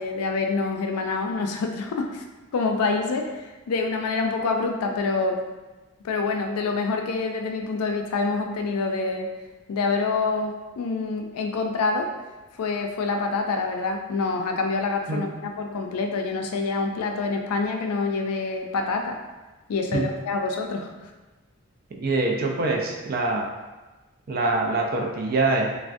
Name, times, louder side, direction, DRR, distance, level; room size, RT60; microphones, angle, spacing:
voice 1, 0.0-2.2 2.5-5.4 6.0-9.3 9.7-12.1 12.6-19.2 19.7-20.9, left 3 dB, 85° left, 3 dB, 0.4 m, -26 dB
voice 2, 21.9-23.4 24.3-25.8, right 2 dB, 40° right, 0 dB, 0.3 m, -24 dB
3.4 x 2.1 x 2.5 m, 1.2 s
head